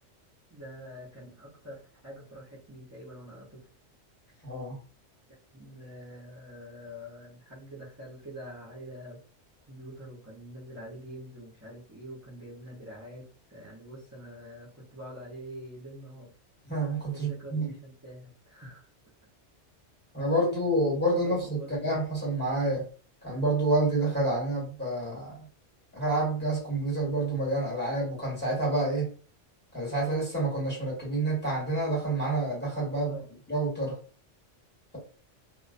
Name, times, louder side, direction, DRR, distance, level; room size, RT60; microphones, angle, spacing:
voice 1, 0.5-3.7 4.3-4.5 5.5-9.2 9.7-16.3 17.1-18.8 21.2-21.9 32.9-33.3, equal, 20° right, -8 dB, 0.5 m, -45 dB
voice 2, 4.4-4.8 16.6-17.7 20.1-22.9 23.2-25.5 25.9-29.1 29.7-33.2 33.5-34.0, right 2 dB, 10° left, -5 dB, 1.2 m, -28 dB
2.3 x 2.1 x 2.5 m, 0.40 s
omnidirectional pair, 1.3 m